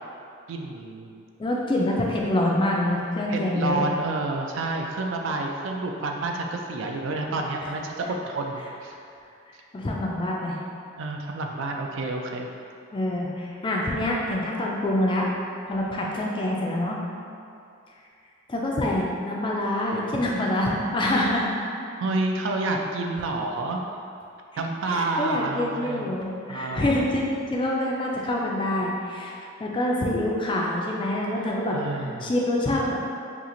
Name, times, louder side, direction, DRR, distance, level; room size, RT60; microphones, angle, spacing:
voice 1, 0.5-1.2 3.3-8.9 11.0-12.5 22.0-23.8 24.6-26.0 26.5-26.9 31.4-32.3, right 2 dB, 65° right, 2 dB, 0.3 m, -29 dB
voice 2, 1.4-3.8 9.7-10.6 12.9-15.3 15.7-17.0 18.5-21.6 24.9-29.3 29.6-31.8 32.2-33.0, left 1 dB, 25° left, -2 dB, 0.3 m, -26 dB
2.9 x 2.4 x 3.7 m, 2.5 s
head